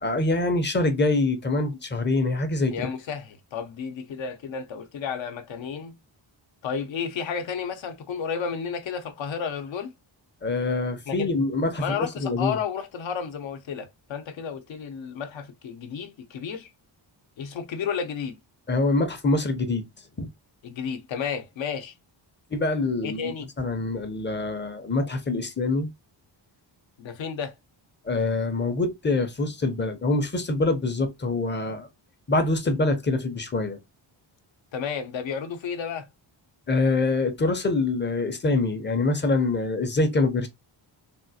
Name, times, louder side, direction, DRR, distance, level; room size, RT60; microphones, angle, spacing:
voice 1, 0.0-2.9 10.4-12.6 18.7-19.8 20.2-20.3 22.5-25.9 28.0-31.9 32.3-33.8 36.7-40.5, left 2 dB, 25° left, 0.6 m, -25 dB
voice 2, 2.7-5.9 6.6-9.9 11.1-11.3 11.8-16.7 17.4-18.4 20.6-21.9 23.0-23.5 27.0-27.5 34.7-36.1, left 6 dB, 70° left, 0.7 m, -32 dB
3.5 x 2.4 x 2.7 m
wide cardioid pair, 150°, 47 cm